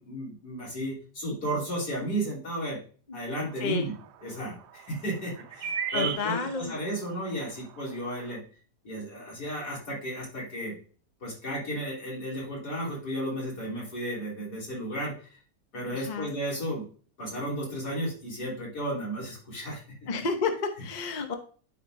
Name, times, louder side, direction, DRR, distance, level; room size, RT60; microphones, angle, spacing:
voice 1, 0.0-2.8 3.1-3.9 4.2-8.4 8.8-10.7 11.2-15.2 15.7-16.9 17.2-19.8, right 1 dB, 75° left, -5 dB, 3.9 m, -33 dB
sound 1, 3.4-3.5 3.8-3.9 5.3-6.9 7.4-7.5 7.8-8.3, right 8 dB, 80° right, 1.2 m, -33 dB
voice 2, 3.6-3.9 5.9-6.8 15.9-16.3 20.1-21.3, left 4 dB, 35° left, 5 dB, 0.7 m, -31 dB
12.0 x 4.5 x 2.6 m, 0.42 s
omnidirectional pair, 1.8 m